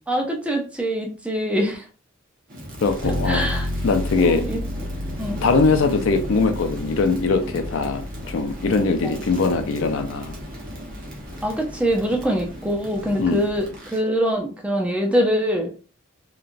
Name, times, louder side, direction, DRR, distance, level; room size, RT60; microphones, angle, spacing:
voice 1, 0.1-1.8 3.3-3.7 4.3-4.6 5.2-5.4 9.0-9.2 11.4-15.7, equal, 5° right, 0.5 m, -24 dB
Crackle, 2.5-14.1, equal, 45° right, 0.9 m, -37 dB
voice 2, 2.8-3.5 3.8-4.4 5.4-8.0 8.3-10.3 13.2-13.4, left 4 dB, 75° left, 0.4 m, -21 dB
sound 1, 3.0-12.8, left 1 dB, 85° right, 0.7 m, -32 dB
2.9 x 2.3 x 2.5 m
head